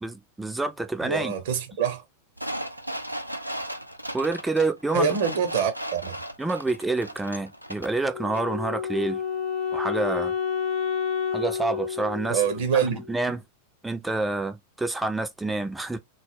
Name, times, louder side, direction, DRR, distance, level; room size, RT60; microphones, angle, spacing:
voice 1, 0.0-1.3 4.1-5.1 6.4-9.2 9.7-10.3 11.3-12.4 12.8-13.4 13.8-16.0, right 3 dB, 5° right, 0.4 m, -28 dB
voice 2, 1.0-2.0 4.9-6.1 12.3-13.0, right 7 dB, 55° right, 0.7 m, -25 dB
sound 1, 2.4-8.0 8.3-8.4, right 1 dB, 90° right, 0.3 m, -36 dB
Wind instrument woodwind instrument, 8.1-13.2, left 7 dB, 45° left, 0.5 m, -30 dB
2.1 x 2.0 x 3.3 m
figure-of-eight pair, 90°, 0 cm